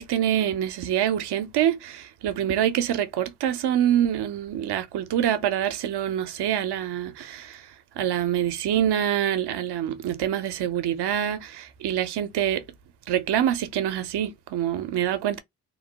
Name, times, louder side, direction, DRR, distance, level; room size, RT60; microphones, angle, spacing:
voice 1, 0.0-7.6 8.0-12.6 13.1-15.4, right 10 dB, 70° right, 0.7 m, -25 dB
2.8 x 2.1 x 2.8 m
supercardioid pair, 45°, 42 cm